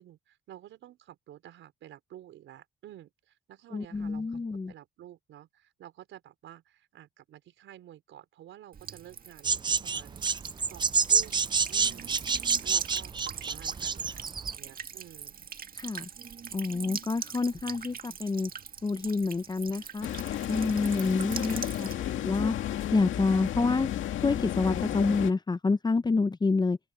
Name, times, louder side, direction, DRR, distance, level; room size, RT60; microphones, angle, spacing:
voice 1, 0.0-4.4 4.7-10.2 10.7-15.5 21.8-22.4, right 12 dB, 80° right, 4.8 m, -51 dB
voice 2, 3.7-4.7 15.8-16.1 16.5-18.5 18.8-21.9 22.2-22.5 22.9-23.9 24.2-26.8, left 3 dB, 20° left, 0.7 m, -28 dB
Buzz / Water tap faucet / Trickle dribble, 8.7-21.9, right 7 dB, 45° right, 1.8 m, -42 dB
sound 1, 9.4-14.5, right 5 dB, 25° right, 0.4 m, -27 dB
sound 2, 20.0-25.3, left 12 dB, 80° left, 2.1 m, -32 dB
open air
cardioid pair, 90°, 20 cm